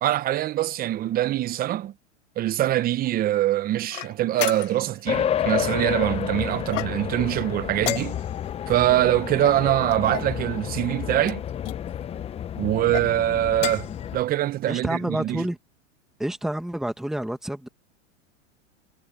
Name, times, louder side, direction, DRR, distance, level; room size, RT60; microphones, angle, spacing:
voice 1, 0.0-1.9 2.4-8.2 8.7-11.4 12.6-15.5, right 13 dB, 25° right, 0.9 m, -24 dB
sound 1, 3.9-5.0 6.7-7.3 7.8-8.5 9.4-10.4 11.2-11.8 12.7-13.1 13.5-14.0, left 13 dB, 75° left, 1.7 m, -32 dB
sound 2, 5.1-14.2, left 9 dB, 15° left, 0.8 m, -30 dB
voice 2, 14.7-15.6 16.2-17.7, right 1 dB, ahead, 2.0 m, -28 dB
hypercardioid pair, 130°, 37 cm